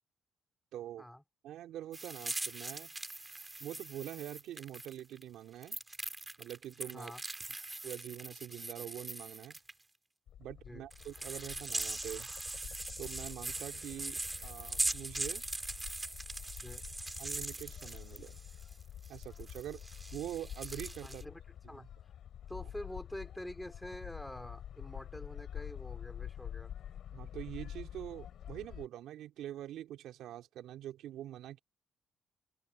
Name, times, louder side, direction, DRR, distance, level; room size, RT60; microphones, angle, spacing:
voice 1, 0.7-1.1 1.4-2.9 3.6-5.8 6.4-7.1 7.8-9.6 10.4-12.3 13.0-15.4 17.2-18.4 19.1-19.8 20.1-21.3 27.1-31.6, right 12 dB, 85° right, 3.5 m, -44 dB
sound 1, 1.9-5.2 5.6-9.7 10.9-18.7 19.0-21.2, right 2 dB, 15° right, 3.0 m, -41 dB
voice 2, 6.9-7.2 10.6-10.8 16.6-16.8 21.0-21.4 21.7-21.9 22.5-26.7, left 1 dB, 5° left, 3.2 m, -46 dB
sound 2, 10.3-28.9, left 10 dB, 70° left, 3.4 m, -48 dB
open air
cardioid pair, 90°, 0 cm